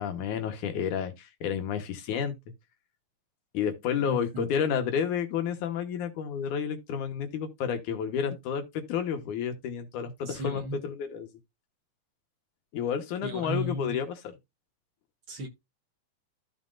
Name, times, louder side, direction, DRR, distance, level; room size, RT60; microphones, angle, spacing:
voice 1, 0.0-2.3 3.5-11.3 12.7-14.3, left 7 dB, 85° left, 2.8 m, -31 dB
voice 2, 4.0-4.5 10.3-10.8 13.2-14.0 15.3-15.5, right 1 dB, 50° right, 2.0 m, -35 dB
13.5 x 5.8 x 2.6 m
omnidirectional pair, 3.4 m